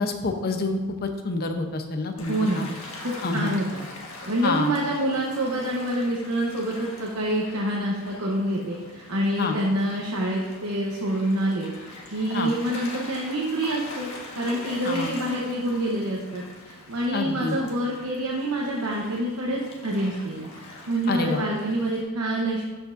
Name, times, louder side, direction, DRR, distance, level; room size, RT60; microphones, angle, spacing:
voice 1, 0.0-2.7 3.2-3.5 4.4-4.8 9.4-9.6 12.3-12.5 14.8-15.1 17.1-17.6 21.1-21.4, left 3 dB, 45° left, 5 dB, 0.7 m, -27 dB
Gull seagull / Waves surf, 2.2-22.0, left 2 dB, 70° left, 1.5 m, -43 dB
voice 2, 2.3-2.8 3.0-3.8 4.3-11.7 12.1-22.6, right 1 dB, 85° right, -3 dB, 1.0 m, -27 dB
13.0 x 5.2 x 2.6 m, 1.3 s
head